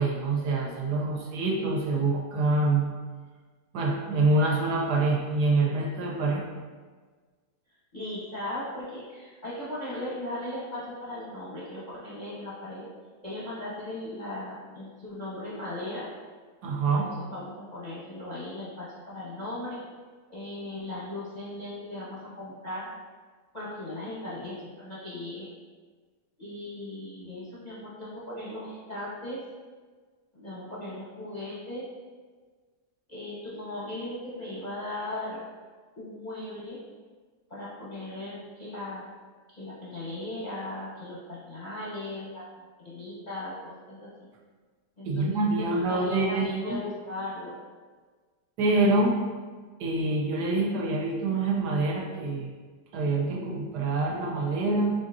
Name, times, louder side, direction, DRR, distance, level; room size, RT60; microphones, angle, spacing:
voice 1, 0.0-2.9 3.7-6.4 16.6-17.1 45.0-46.8 48.6-49.2 49.8-52.5 52.9-54.9, right 2 dB, 75° right, -1 dB, 1.2 m, -26 dB
voice 2, 7.9-12.9 13.2-16.1 16.8-19.8 20.3-22.9 23.5-25.5 26.4-29.4 30.3-31.9 33.1-35.4 36.0-36.8 37.5-39.0 39.5-44.3 45.0-45.4 45.9-47.6, left 1 dB, 40° left, -9 dB, 0.6 m, -38 dB
4.4 x 3.8 x 2.6 m, 1.5 s
omnidirectional pair, 1.8 m